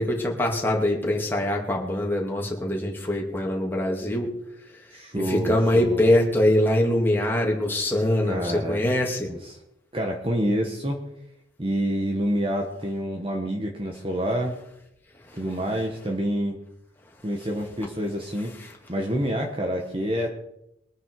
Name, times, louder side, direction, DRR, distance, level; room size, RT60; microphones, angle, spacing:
voice 1, 0.0-4.3 5.1-9.3 18.6-18.7, left 1 dB, 10° left, -1 dB, 2.7 m, -23 dB
voice 2, 4.9-6.0 8.2-8.8 9.3-9.6 9.9-11.0 11.6-14.5 15.3-16.6 17.2-18.5 18.9-20.3, equal, 25° right, 1 dB, 1.4 m, -27 dB
22.5 x 9.8 x 4.8 m, 0.81 s
head